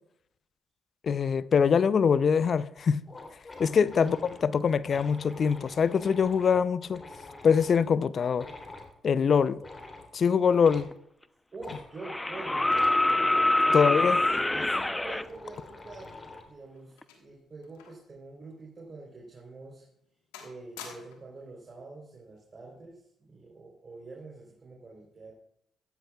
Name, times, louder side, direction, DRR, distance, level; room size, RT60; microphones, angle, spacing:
voice 1, 1.0-3.0 3.6-4.2 4.4-7.0 7.4-8.5 9.0-9.6 10.1-10.9 13.7-14.2, left 6 dB, 55° left, 0.5 m, -23 dB
sound 1, 2.8-2.9 3.1-7.9 8.3-8.9 9.6-10.1 10.6-10.9 11.6-11.8 12.7-13.0 13.8-16.5, left 2 dB, 30° left, 3.3 m, -46 dB
voice 2, 3.8-4.2 11.5-14.1 14.5-19.9 20.4-25.3, right 3 dB, 40° right, 3.6 m, -45 dB
sound 2, 10.9-11.0 12.0-15.2 17.0-17.1, left 1 dB, 15° left, 0.7 m, -25 dB
sound 3, 16.3-18.1 18.4-18.6 19.2-19.4 19.8-20.1 20.3-21.4 22.4-22.7, left 7 dB, 85° left, 1.4 m, -49 dB
15.0 x 14.0 x 2.4 m
hypercardioid pair, 45°, 0 cm